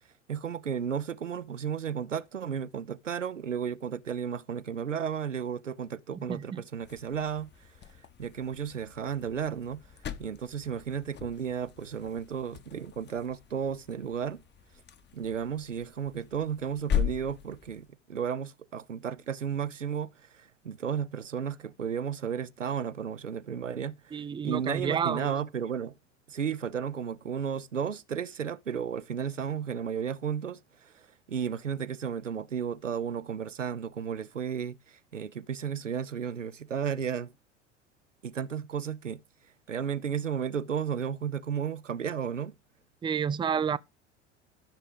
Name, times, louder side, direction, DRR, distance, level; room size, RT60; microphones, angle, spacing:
voice 1, 0.3-7.7 8.2-9.9 10.2-14.4 15.1-25.9 26.3-37.3 38.2-39.2 39.7-42.5, right 7 dB, 90° right, 0.7 m, -33 dB
voice 2, 6.3-6.6 24.1-25.3 43.0-43.8, right 7 dB, 15° right, 0.6 m, -30 dB
sound 1, 6.8-17.9, left 9 dB, 30° left, 1.4 m, -39 dB
13.0 x 6.6 x 5.1 m
figure-of-eight pair, 75°, 36 cm